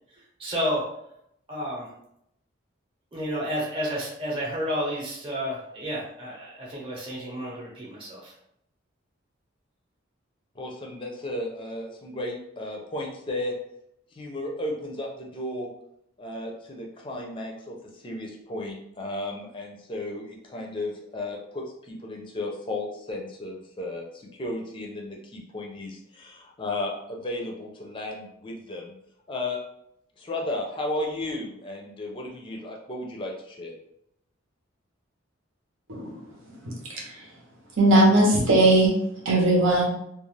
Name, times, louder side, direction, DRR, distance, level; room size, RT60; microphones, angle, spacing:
voice 1, 0.4-0.8 1.5-1.9 3.1-8.3, equal, 25° right, -4 dB, 0.8 m, -31 dB
voice 2, 10.6-13.5 14.1-15.7 16.2-28.9 29.3-29.6 30.2-33.7, left 1 dB, 25° left, 0 dB, 0.4 m, -34 dB
voice 3, 37.8-38.9 39.2-39.8, right 1 dB, 80° right, -2 dB, 0.9 m, -18 dB
2.4 x 2.3 x 3.1 m, 0.75 s
head